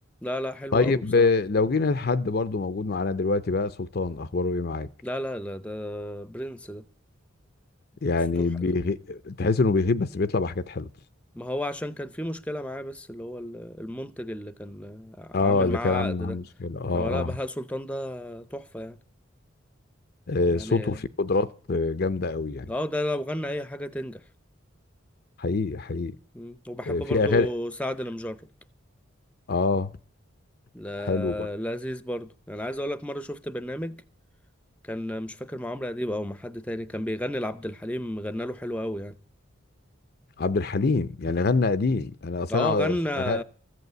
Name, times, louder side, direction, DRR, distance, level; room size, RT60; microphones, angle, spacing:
voice 1, 0.2-1.3 5.0-6.8 8.4-8.5 11.4-16.4 16.9-19.0 20.5-21.0 22.7-24.2 26.3-28.4 30.7-34.0 34.9-39.1 42.5-43.4, left 1 dB, 5° left, 0.6 m, -32 dB
voice 2, 0.7-4.9 8.0-10.9 15.3-17.3 20.3-22.7 25.4-26.1 26.9-27.5 29.5-29.9 31.0-31.5 40.4-43.4, left 3 dB, 50° left, 0.5 m, -25 dB
14.5 x 8.1 x 8.0 m
head